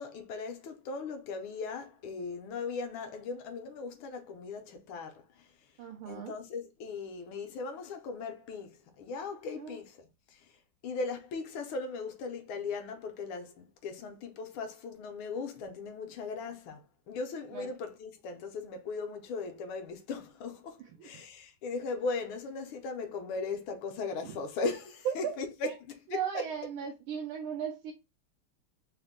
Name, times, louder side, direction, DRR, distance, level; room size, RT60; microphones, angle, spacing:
voice 1, 0.0-5.2 6.0-10.4 10.8-25.7 26.1-26.5, left 4 dB, 75° left, 1.5 m, -38 dB
voice 2, 5.8-6.3 9.6-9.8 17.5-17.7 21.0-21.1 25.0-25.3 25.6-25.7 26.1-27.9, right 8 dB, 80° right, 1.5 m, -36 dB
4.2 x 2.1 x 3.5 m
omnidirectional pair, 2.3 m